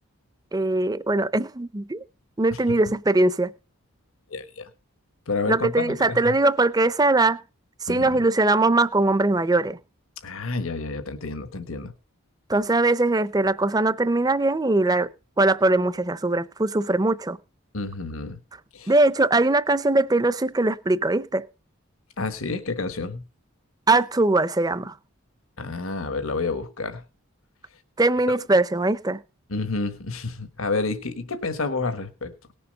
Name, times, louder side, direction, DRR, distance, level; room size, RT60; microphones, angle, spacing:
voice 1, 0.5-2.0 2.4-3.5 5.5-7.4 7.8-9.8 12.5-15.1 15.4-17.4 18.9-21.5 23.9-24.9 28.0-29.2, right 2 dB, 20° right, 0.5 m, -21 dB
voice 2, 4.3-4.7 5.3-6.4 7.9-8.2 10.2-11.9 17.7-18.4 18.7-18.9 22.2-23.2 25.6-27.0 28.3-28.4 29.5-32.5, left 3 dB, 75° left, 1.3 m, -29 dB
18.5 x 7.0 x 5.3 m
head